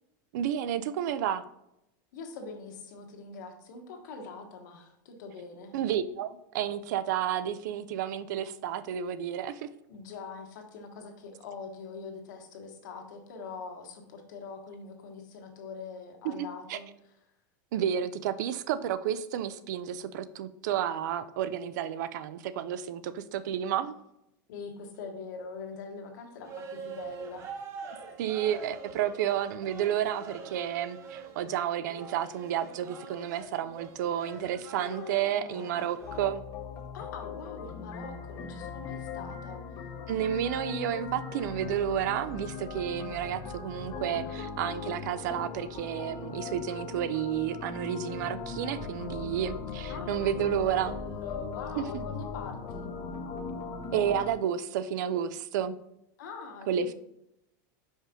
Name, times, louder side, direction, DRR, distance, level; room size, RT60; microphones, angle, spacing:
voice 1, 0.3-1.4 5.7-9.7 16.2-16.8 17.7-23.9 28.2-36.4 40.1-51.0 51.8-51.9 53.9-55.7 56.7-56.9, right 9 dB, 65° right, 14 dB, 0.5 m, -31 dB
voice 2, 2.1-5.7 9.9-16.9 24.5-27.5 34.7-36.1 36.9-39.6 49.9-52.9 56.2-56.9, left 4 dB, 70° left, 3 dB, 1.3 m, -43 dB
sound 1, 26.4-36.3, right 5 dB, 25° right, 0.7 m, -45 dB
sound 2, 36.0-54.3, left 5 dB, 30° left, 0.7 m, -39 dB
5.2 x 4.9 x 3.7 m, 0.83 s
supercardioid pair, 160°, 10 cm